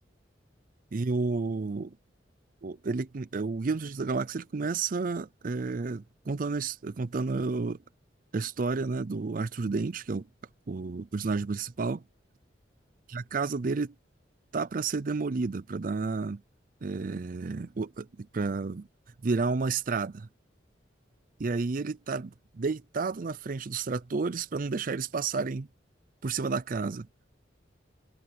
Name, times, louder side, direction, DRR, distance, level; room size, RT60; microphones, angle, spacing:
voice 1, 0.9-2.0 2.6-7.8 8.3-10.3 10.7-12.0 13.1-13.9 14.5-16.4 16.8-18.9 19.2-20.3 21.4-25.7 26.2-27.1, right 4 dB, 45° right, 0.5 m, -31 dB
head